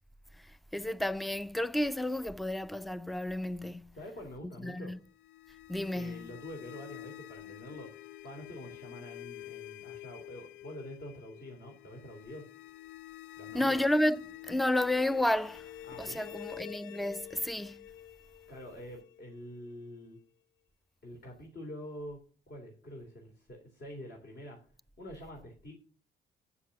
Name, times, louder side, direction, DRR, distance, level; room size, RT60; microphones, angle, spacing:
voice 1, 0.7-4.0 4.4-5.0 5.7-6.3 13.5-15.7 16.0-17.8, left 1 dB, ahead, 0.4 m, -31 dB
voice 2, 3.9-4.9 5.9-7.9 8.2-12.5 13.4-13.8 15.9-16.2 18.5-20.2 21.0-24.6 25.0-25.7, equal, 55° left, 3.2 m, -46 dB
sound 1, 5.0-20.0, left 14 dB, 80° left, 0.4 m, -48 dB
8.7 x 7.1 x 6.4 m
cardioid pair, 90°, 20 cm